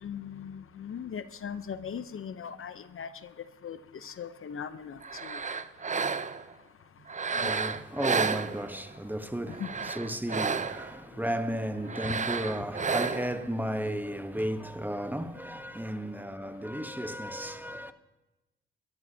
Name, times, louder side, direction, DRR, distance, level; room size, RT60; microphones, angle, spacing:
voice 1, 0.0-3.3 3.6-5.4 7.3-7.5 9.6-9.7 11.9-12.2, left 7 dB, 45° left, 0.7 m, -39 dB
sound 1, 5.0-6.5 7.1-9.0 9.5-11.0 11.9-13.4, right 5 dB, 25° right, 0.6 m, -31 dB
voice 2, 7.4-17.9, equal, 5° right, 1.0 m, -34 dB
24.0 x 13.5 x 2.8 m
supercardioid pair, 60°, 29 cm